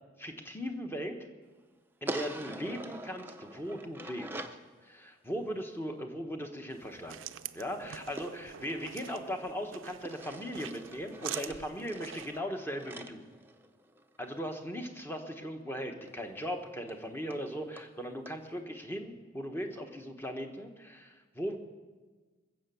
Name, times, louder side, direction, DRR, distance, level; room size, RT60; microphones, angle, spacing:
voice 1, 0.2-1.2 2.0-4.5 4.8-7.2 7.5-13.3 14.2-21.6, equal, 10° left, 4 dB, 1.2 m, -38 dB
sound 1, 2.1-4.7 8.2-9.6 10.0-14.2 16.1-16.2 16.5-16.6 16.9-17.0 17.3-17.4 17.8-17.9 18.3-18.4, right 1 dB, 10° right, 0.5 m, -44 dB
sound 2, 6.7-12.4, right 10 dB, 90° right, 0.5 m, -45 dB
20.5 x 7.8 x 7.0 m, 1.4 s
head